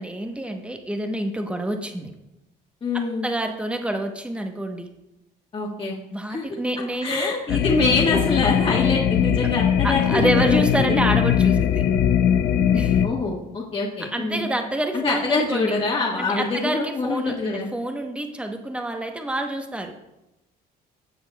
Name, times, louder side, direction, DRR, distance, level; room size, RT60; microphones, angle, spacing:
voice 1, 0.0-2.1 2.9-4.9 6.1-7.6 9.8-11.8 12.7-13.0 14.1-15.8 16.2-19.9, right 1 dB, 5° right, 4 dB, 1.0 m, -27 dB
voice 2, 2.8-3.2 5.5-6.0 6.3-6.4 7.0-11.0 13.0-14.5 14.9-17.7, left 3 dB, 35° left, -4 dB, 1.4 m, -24 dB
sound 1, 7.5-13.1, left 9 dB, 75° left, 0.6 m, -20 dB
15.0 x 6.6 x 2.3 m, 0.93 s
cardioid pair, 110°, 17 cm